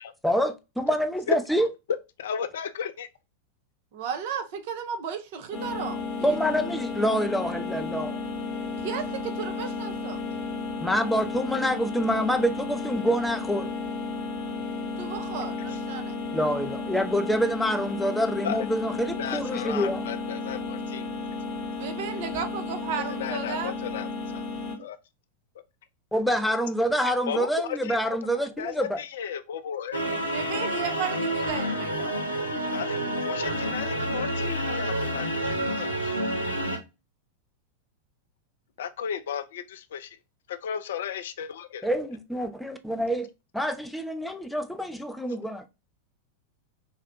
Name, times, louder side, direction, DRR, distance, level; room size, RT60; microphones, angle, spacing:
voice 1, 0.2-1.7 6.2-8.2 10.8-13.7 16.3-20.0 26.1-29.0 41.8-43.3 43.5-45.6, equal, ahead, 0.5 m, -26 dB
voice 2, 1.9-3.1 15.7-15.8 18.4-18.7 19.2-21.1 23.0-24.5 24.8-25.0 27.3-30.0 32.7-36.2 38.8-40.2 40.5-41.9, left 8 dB, 60° left, 0.3 m, -34 dB
voice 3, 3.9-6.4 8.8-10.2 15.0-16.1 21.7-23.7 30.3-32.1, right 7 dB, 50° right, 0.6 m, -34 dB
sound 1, 5.5-24.8, left 4 dB, 30° left, 0.8 m, -33 dB
sound 2, 29.9-36.8, right 1 dB, 90° left, 0.7 m, -29 dB
4.1 x 2.0 x 2.5 m
figure-of-eight pair, 90°, 0 cm